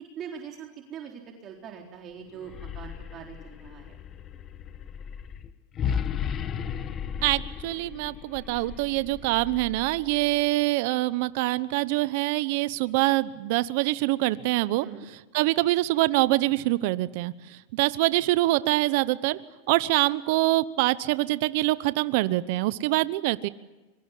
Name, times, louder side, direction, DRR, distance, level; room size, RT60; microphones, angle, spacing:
voice 1, 0.2-3.9 14.8-15.1, right 7 dB, 35° right, 1 dB, 3.9 m, -42 dB
sound 1, 2.3-10.5, left 7 dB, 30° left, 1.4 m, -35 dB
voice 2, 7.2-14.9 15.3-19.4 19.7-23.5, right 18 dB, 60° right, 16 dB, 1.0 m, -25 dB
25.5 x 23.0 x 8.5 m, 1.1 s
hypercardioid pair, 125°, 0 cm